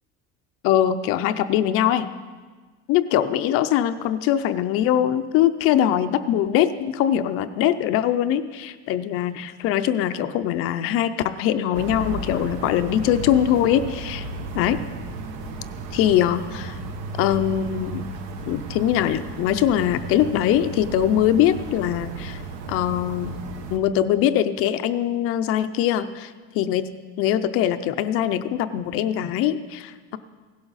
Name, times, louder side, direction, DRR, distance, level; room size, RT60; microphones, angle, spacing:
voice 1, 0.6-2.1 2.9-14.2 14.6-14.8 15.9-16.8 17.2-18.0 18.5-22.4 22.7-23.3 23.7-26.9 27.2-30.2, left 11 dB, 45° left, 11 dB, 0.5 m, -22 dB
sound 1, 11.7-23.8, right 3 dB, 75° right, 1.3 m, -34 dB
16.5 x 11.5 x 4.0 m, 1.4 s
cardioid pair, 175°, 30 cm